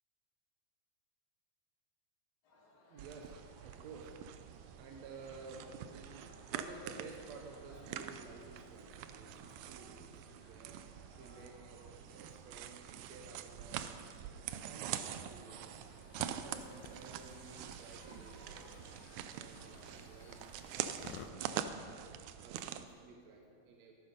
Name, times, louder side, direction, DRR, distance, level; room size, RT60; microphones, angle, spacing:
sound 1, 2.4-21.9, left 1 dB, 55° left, 3.3 m, -63 dB
voice 1, 2.9-3.3 3.6-4.1 4.8-6.2 6.5-10.8 11.2-14.1 14.6-15.8 16.2-23.9, right 3 dB, 65° right, 1 dB, 1.9 m, -54 dB
sound 2, 3.0-22.9, right 10 dB, 85° right, 1.7 m, -45 dB
sound 3, 15.3-21.3, left 8 dB, 85° left, 2.6 m, -57 dB
14.0 x 11.5 x 5.3 m, 2.2 s
omnidirectional pair, 4.1 m